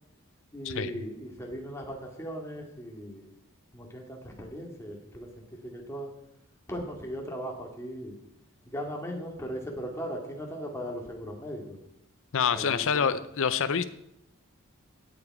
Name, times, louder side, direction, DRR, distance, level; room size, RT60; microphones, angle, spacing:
voice 1, 0.5-3.3 3.7-6.1 6.7-8.2 8.6-11.8 12.5-13.1, equal, 10° left, 0 dB, 2.2 m, -38 dB
voice 2, 12.3-13.8, left 7 dB, 65° left, 12 dB, 0.6 m, -26 dB
17.0 x 7.0 x 4.8 m, 0.77 s
head